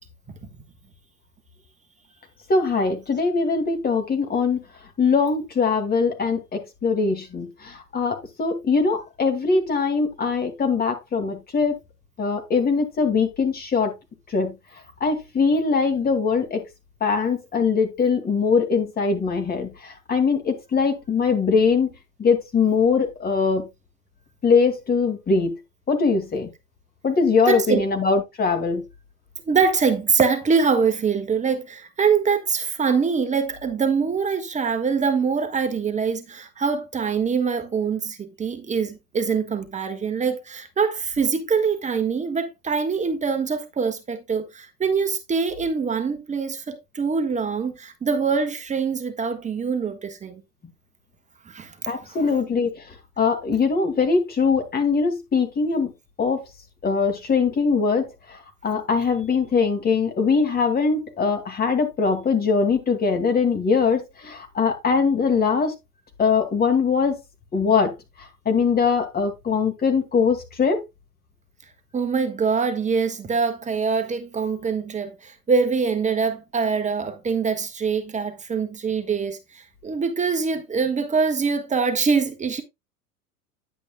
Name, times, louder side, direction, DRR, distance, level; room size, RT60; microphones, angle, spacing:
voice 1, 2.5-4.6 5.0-11.8 12.2-13.9 14.3-14.5 15.0-16.6 17.0-21.9 22.2-23.6 24.4-25.5 25.9-26.5 27.0-28.8 51.9-52.8 53.2-55.9 56.2-56.4 56.8-58.1 58.6-65.7 66.2-67.2 67.5-67.9 68.5-70.8, left 5 dB, 20° left, 2.2 m, -21 dB
voice 2, 27.5-27.8 29.5-50.4 51.5-51.7 52.1-52.2 71.9-79.4 79.8-82.6, right 5 dB, 15° right, 1.3 m, -24 dB
10.0 x 8.8 x 2.3 m
figure-of-eight pair, 95°, 45 cm